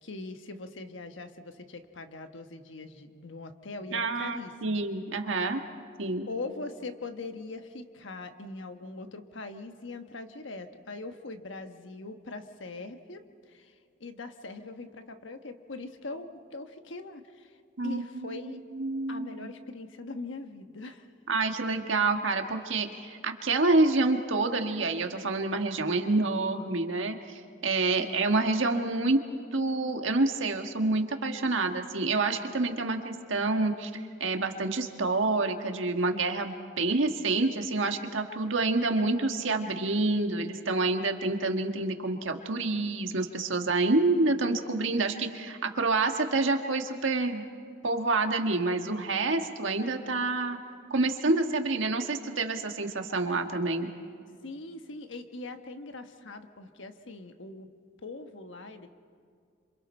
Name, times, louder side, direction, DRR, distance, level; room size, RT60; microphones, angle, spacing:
voice 1, 0.0-4.8 6.3-17.6 17.8-18.6 19.1-21.1 28.0-28.2 39.0-39.2 54.4-57.7 58.0-58.9, left 3 dB, 70° left, 7 dB, 1.2 m, -41 dB
voice 2, 3.9-5.6 6.0-6.3 17.8-19.5 21.3-29.2 29.5-47.4 47.8-50.6 50.9-53.9, right 3 dB, 75° right, 5 dB, 1.5 m, -28 dB
27.0 x 27.0 x 4.4 m, 2.2 s
head